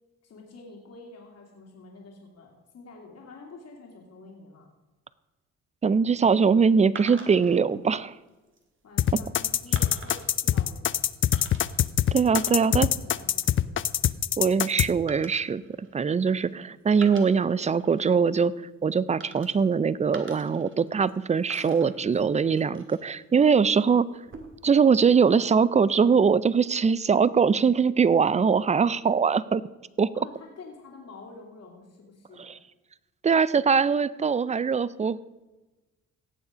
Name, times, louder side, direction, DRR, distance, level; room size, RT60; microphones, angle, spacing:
voice 1, 0.2-4.7 8.8-11.3 12.5-13.8 30.1-32.6, left 3 dB, 55° left, 0 dB, 2.6 m, -47 dB
voice 2, 5.8-8.1 12.1-12.9 14.4-18.5 18.8-24.1 24.6-29.6 30.0-30.1 32.5-32.6 33.2-35.2, right 6 dB, 25° right, 19 dB, 0.4 m, -22 dB
sound 1, 7.0-7.6 8.3-8.6 9.8-10.4 11.3-11.9 12.2-12.9 13.2-13.6 15.1-16.5 16.9-18.2 19.2-19.8 20.1-21.2 21.5-23.2 24.1-24.7, right 4 dB, 40° right, 2.0 m, -45 dB
sound 2, 9.0-14.9, left 11 dB, 40° left, 0.5 m, -23 dB
17.5 x 7.1 x 5.0 m, 1.1 s
cardioid pair, 90°, 30 cm